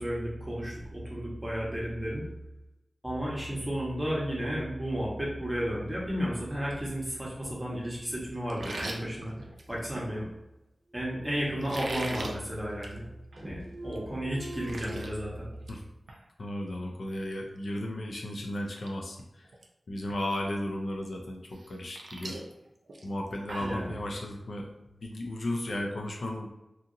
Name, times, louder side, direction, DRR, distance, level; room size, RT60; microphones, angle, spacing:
voice 1, 0.0-2.2 3.0-9.3 9.7-10.3 10.9-13.0 13.4-15.5 23.6-23.9, equal, 15° right, -5 dB, 1.0 m, -33 dB
sound 1, 8.5-10.1 11.6-12.3 12.7-13.0 13.3-13.4 13.9-14.0 14.3-15.1 15.5-15.8 16.1-16.2 18.1-18.2 18.6-18.9 19.2-19.6 20.1-20.2 21.5-23.8, right 2 dB, 80° right, 0.4 m, -40 dB
sound 2, 10.9-11.9 12.2-13.1 13.4-15.0, right 1 dB, 40° right, 0.8 m, -46 dB
voice 2, 16.4-19.2 19.9-22.4 23.0-24.7 25.0-26.5, left 1 dB, 70° left, 1 dB, 0.4 m, -34 dB
2.8 x 2.5 x 2.6 m, 0.92 s
wide cardioid pair, 80°, 0 cm